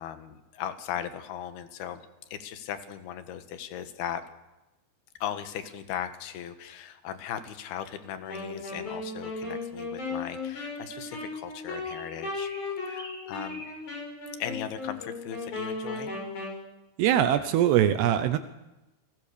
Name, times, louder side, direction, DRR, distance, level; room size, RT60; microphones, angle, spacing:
voice 1, 0.0-2.0 2.3-4.2 5.2-12.5 12.8-13.6 14.4-16.1, left 9 dB, 70° left, 9 dB, 3.3 m, -38 dB
Wind instrument woodwind instrument, 8.3-16.6, left 3 dB, 45° left, 8.2 m, -36 dB
sound 1, 8.8-9.0 9.9-10.0 10.5-10.7 11.0-11.2 11.8-14.1 14.4-14.5 14.9-15.1 15.4-15.6, equal, 20° left, 4.6 m, -48 dB
voice 2, 17.0-18.4, right 11 dB, 80° right, 10 dB, 2.9 m, -22 dB
29.5 x 20.5 x 6.9 m, 1.0 s
omnidirectional pair, 4.9 m